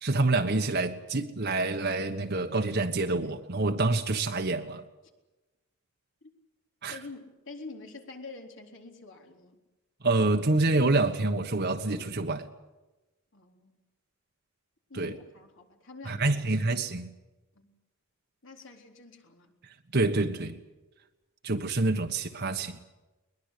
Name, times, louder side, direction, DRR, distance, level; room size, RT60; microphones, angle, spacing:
voice 1, 0.0-4.8 6.8-7.0 10.0-12.5 14.9-15.1 16.1-17.1 19.9-20.6 21.4-22.8, right 2 dB, 50° right, 1.3 m, -27 dB
voice 2, 6.9-9.6 13.3-13.8 14.9-16.4 17.5-17.7 18.4-19.5, left 3 dB, 60° left, 3.9 m, -46 dB
21.5 x 21.0 x 8.3 m
head